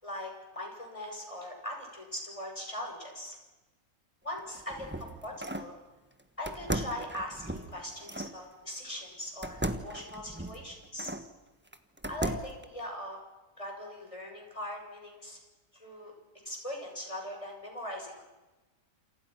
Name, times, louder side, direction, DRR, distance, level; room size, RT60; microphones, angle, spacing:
voice 1, 0.0-3.4 4.2-5.8 6.4-11.1 12.1-13.2 13.6-15.4 15.7-16.1 16.5-18.2, left 1 dB, 20° left, 1 dB, 7.3 m, -40 dB
sound 1, 4.4-5.7 6.5-8.4 9.4-11.3 11.7-12.6, right 1 dB, 10° right, 1.3 m, -36 dB
28.5 x 27.5 x 6.0 m, 1.1 s
omnidirectional pair, 1.5 m